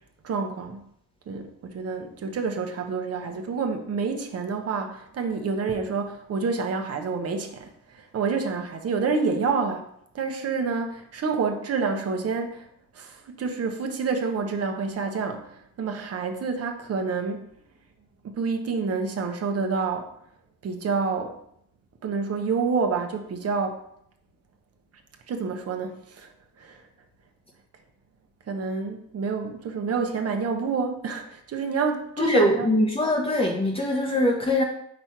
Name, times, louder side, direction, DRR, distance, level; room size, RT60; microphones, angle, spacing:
voice 1, 0.2-0.8 1.3-9.9 10.1-12.7 12.9-17.5 18.2-20.1 20.6-21.3 22.0-23.8 25.3-26.3 26.6-26.8 28.5-32.7, right 5 dB, 55° right, 5 dB, 1.0 m, -28 dB
voice 2, 32.2-34.6, left 1 dB, 20° left, -1 dB, 0.9 m, -22 dB
5.3 x 4.3 x 4.6 m, 0.72 s
cardioid pair, 90°, 30 cm